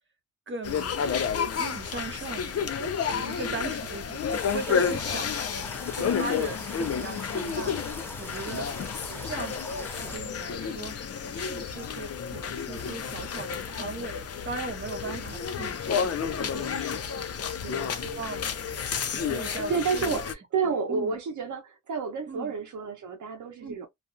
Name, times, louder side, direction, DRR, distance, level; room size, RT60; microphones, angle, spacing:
voice 1, 0.5-1.0 1.5-2.5 3.1-5.4 6.0-8.7 9.2-11.0 11.3-17.3 17.8-18.5 19.1-20.2 20.9-21.2 22.3-22.5 23.6-23.9, right 3 dB, 40° right, 1.1 m, -39 dB
sound 1, 0.6-20.3, left 6 dB, 55° left, 0.5 m, -31 dB
voice 2, 3.3-3.6 4.6-5.0 9.1-9.3 15.0-15.2 17.6-17.9 19.4-23.9, right 5 dB, 85° right, 0.6 m, -31 dB
sound 2, 4.3-10.2, left 1 dB, 10° left, 0.5 m, -42 dB
2.4 x 2.3 x 2.4 m
wide cardioid pair, 90°, 29 cm